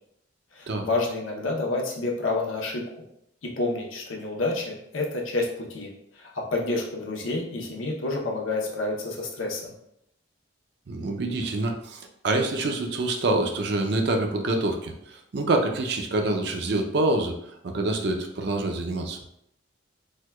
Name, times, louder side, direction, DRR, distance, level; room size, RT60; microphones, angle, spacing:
voice 1, 0.5-2.8 3.6-9.7, left 2 dB, 85° left, 0 dB, 0.7 m, -29 dB
voice 2, 10.9-19.2, right 2 dB, 55° right, 3 dB, 0.4 m, -26 dB
4.4 x 2.2 x 2.2 m, 0.76 s
head